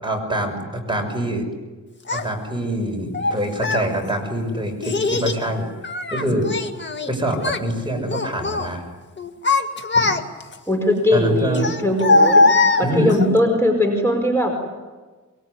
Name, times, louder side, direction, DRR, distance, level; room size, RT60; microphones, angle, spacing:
voice 1, 0.0-1.4 2.1-5.6 6.1-6.5 7.1-8.8 11.1-11.7 12.8-13.3, right 1 dB, 15° right, 2 dB, 6.3 m, -24 dB
Child speech kid speaking, 2.1-2.2 3.1-3.9 4.8-5.4 5.8-7.1 7.4-7.7 8.1-8.7 9.2-10.5 11.5-13.3, left 3 dB, 35° left, 1.9 m, -20 dB
voice 2, 10.7-12.4 12.8-14.5, left 1 dB, 10° left, 2 dB, 4.9 m, -20 dB
23.5 x 23.5 x 9.8 m, 1.3 s
wide cardioid pair, 110°, 30 cm